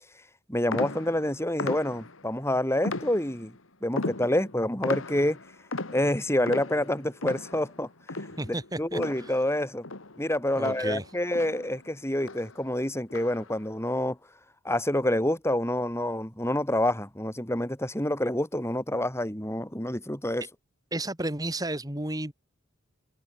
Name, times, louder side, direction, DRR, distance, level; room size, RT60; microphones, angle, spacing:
voice 1, 0.5-3.5 3.8-5.4 5.9-7.9 8.5-9.8 10.2-14.2 14.6-20.4, left 1 dB, 15° left, 6.1 m, -27 dB
sound 1, 0.7-2.3 2.8-3.6 4.0-9.6 9.8-11.9 12.2-12.6 13.1-13.6, left 2 dB, 70° left, 2.2 m, -37 dB
voice 2, 8.4-9.3 10.6-11.1 20.9-22.3, right 1 dB, 20° right, 3.0 m, -32 dB
head